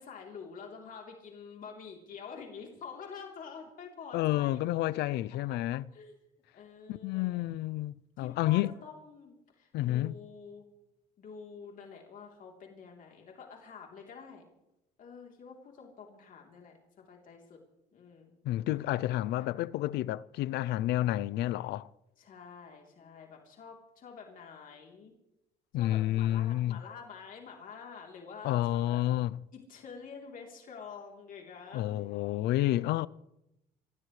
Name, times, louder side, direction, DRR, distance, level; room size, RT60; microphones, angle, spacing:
voice 1, 0.0-4.6 5.5-5.6 5.9-6.2 6.5-7.4 8.2-10.7 11.2-14.4 15.0-17.6 17.9-18.3 19.4-19.5 22.2-25.1 25.8-29.0 29.5-33.1, left 6 dB, 55° left, 3.4 m, -48 dB
voice 2, 4.1-5.9 6.9-8.7 9.7-10.1 18.4-21.9 25.7-26.8 28.4-29.3 31.7-33.1, left 15 dB, 80° left, 0.5 m, -30 dB
25.5 x 16.5 x 3.2 m
cardioid pair, 110°, 17 cm